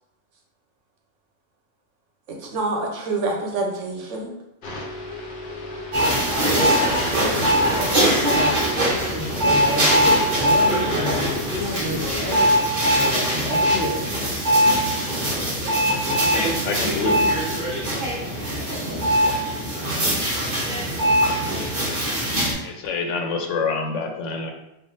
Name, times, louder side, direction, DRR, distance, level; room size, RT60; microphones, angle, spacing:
voice 1, 2.3-4.3 14.4-14.5, right 3 dB, 75° right, 0 dB, 1.1 m, -27 dB
sound 1, 4.6-12.6, left 3 dB, 55° left, 0.7 m, -34 dB
sound 2, 5.9-22.5, equal, 40° right, 1.1 m, -21 dB
voice 2, 8.2-8.5 9.1-12.5 13.0-14.0, left 1 dB, 10° right, -5 dB, 0.5 m, -30 dB
voice 3, 16.1-17.3 22.6-24.5, left 4 dB, 75° left, 3 dB, 0.9 m, -27 dB
3.3 x 2.4 x 3.9 m, 0.89 s
omnidirectional pair, 1.3 m